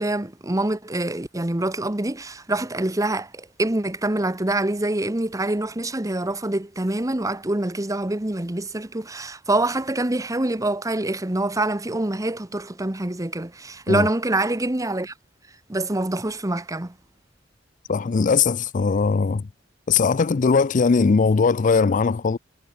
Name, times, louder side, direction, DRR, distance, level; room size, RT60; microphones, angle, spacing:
voice 1, 0.0-15.1 15.7-16.9, right 2 dB, 20° right, 1.1 m, -25 dB
voice 2, 17.9-19.4 19.9-22.4, left 5 dB, 45° left, 0.4 m, -20 dB
head